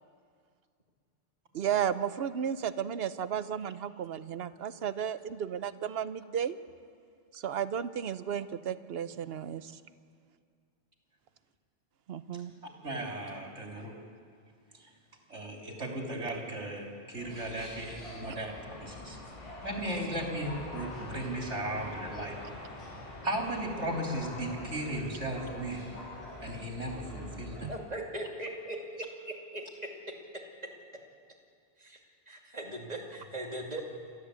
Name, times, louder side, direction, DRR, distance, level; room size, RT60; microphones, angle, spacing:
voice 1, 1.5-6.6 7.3-9.7 12.1-12.5 27.6-27.7, right 8 dB, 65° right, 14 dB, 0.9 m, -33 dB
voice 2, 12.8-13.9 14.8-14.9 15.3-18.5 18.8-19.2 19.6-22.4 23.2-25.8 26.4-27.7, right 1 dB, 85° right, 0 dB, 3.5 m, -36 dB
sound 1, 17.1-27.7, left 2 dB, 25° left, 7.8 m, -45 dB
voice 3, 27.7-29.1 29.5-29.6 31.8-32.0 32.3-33.8, right 1 dB, 35° right, 0 dB, 2.7 m, -39 dB
28.0 x 13.0 x 8.3 m, 2.2 s
omnidirectional pair, 1.2 m